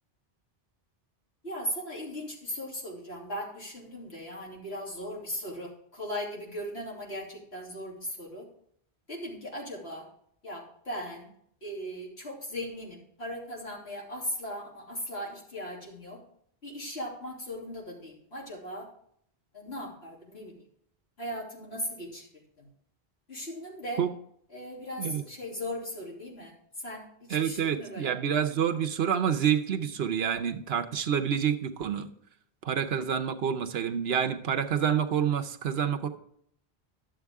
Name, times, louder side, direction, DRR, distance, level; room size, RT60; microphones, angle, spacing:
voice 1, 1.4-8.5 9.1-10.0 10.4-11.3 11.6-16.2 16.6-18.9 19.5-20.5 21.2-22.3 22.6-22.7 23.3-24.0 24.5-28.1, equal, 75° left, -4 dB, 3.1 m, -38 dB
voice 2, 27.3-32.1 32.6-36.1, right 8 dB, 75° right, 7 dB, 1.0 m, -28 dB
11.5 x 7.4 x 3.5 m, 0.68 s
omnidirectional pair, 1.1 m